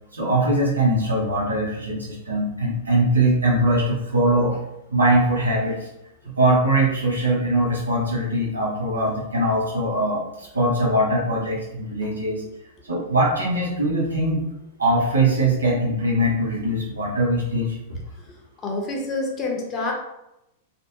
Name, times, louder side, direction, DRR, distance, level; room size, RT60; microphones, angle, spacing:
voice 1, 0.1-4.6 4.9-5.9 6.4-12.4 12.8-14.4 14.8-17.8, right 1 dB, 85° right, -4 dB, 0.8 m, -21 dB
voice 2, 18.6-19.9, left 2 dB, 25° left, -1 dB, 0.7 m, -27 dB
2.6 x 2.2 x 2.7 m, 0.88 s
figure-of-eight pair, 100°, 0 cm